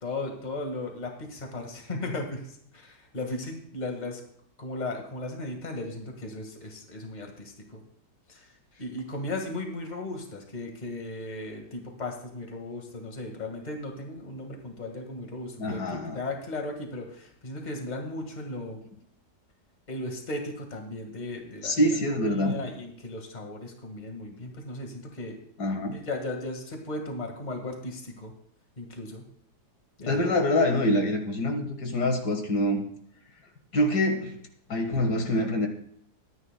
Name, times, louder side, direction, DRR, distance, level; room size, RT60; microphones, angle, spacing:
voice 1, 0.0-4.2 4.6-7.8 8.3-8.5 8.8-18.8 19.9-21.9 22.2-25.4 25.9-28.3 28.8-29.3 30.0-30.3, left 2 dB, 25° left, 3 dB, 1.7 m, -36 dB
voice 2, 15.6-16.2 21.6-22.6 25.6-25.9 30.1-32.8 33.7-34.4 34.7-35.7, left 1 dB, 75° left, 4 dB, 2.1 m, -25 dB
23.0 x 9.7 x 2.2 m, 0.66 s
omnidirectional pair, 1.8 m